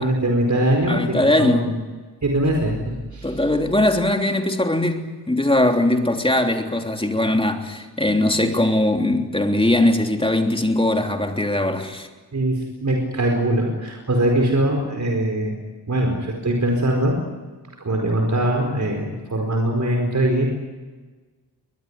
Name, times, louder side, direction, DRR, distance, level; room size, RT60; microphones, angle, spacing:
voice 1, 0.0-1.7 2.2-3.4 12.3-15.6 15.9-17.2 17.8-20.5, right 1 dB, 45° right, 4.7 m, -22 dB
voice 2, 0.9-1.6 3.2-12.1, left 1 dB, 15° left, 3.2 m, -20 dB
23.0 x 21.0 x 9.6 m
wide cardioid pair, 95°, 40 cm